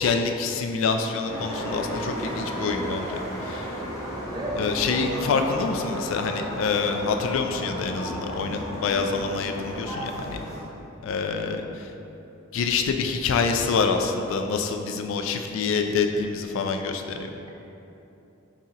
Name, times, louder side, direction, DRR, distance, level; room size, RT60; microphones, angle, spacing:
voice 1, 0.0-3.7 4.6-10.4 11.0-11.9 12.5-17.3, left 5 dB, 70° left, 5 dB, 0.3 m, -26 dB
sound 1, 1.3-10.6, equal, 15° left, 0.9 m, -33 dB
voice 2, 4.3-5.4, right 1 dB, 20° right, -2 dB, 0.5 m, -33 dB
4.2 x 3.7 x 2.8 m, 2.9 s
head